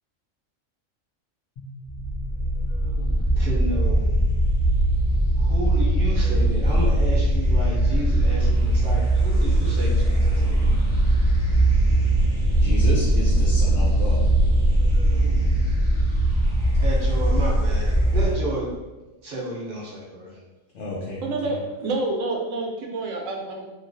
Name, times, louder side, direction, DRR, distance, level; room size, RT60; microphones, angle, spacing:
sound 1, 1.6-9.1, left 1 dB, 55° left, 0.5 m, -40 dB
sound 2, 1.8-18.3, right 1 dB, 20° right, 0.5 m, -20 dB
voice 1, 3.4-4.1 5.4-10.8 16.8-18.7 19.2-20.4, equal, 50° right, -6 dB, 0.9 m, -32 dB
voice 2, 12.6-14.2 20.7-21.2, left 1 dB, 75° left, -6 dB, 1.0 m, -30 dB
voice 3, 21.2-23.7, right 2 dB, 80° right, 1 dB, 0.9 m, -28 dB
2.9 x 2.4 x 2.5 m, 1.2 s
omnidirectional pair, 1.3 m